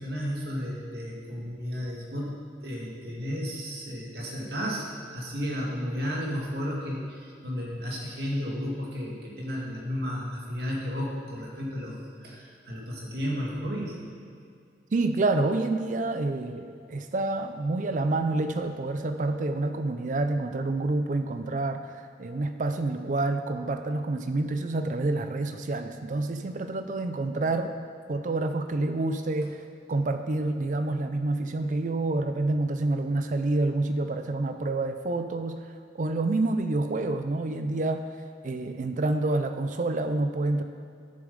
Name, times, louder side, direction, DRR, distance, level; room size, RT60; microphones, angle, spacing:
voice 1, 0.0-2.4 2.6-14.0, equal, 60° right, -3 dB, 2.1 m, -33 dB
voice 2, 14.9-27.8 28.1-38.1 38.4-40.6, right 2 dB, 45° right, 8 dB, 0.4 m, -28 dB
11.0 x 7.2 x 5.3 m, 2.4 s
head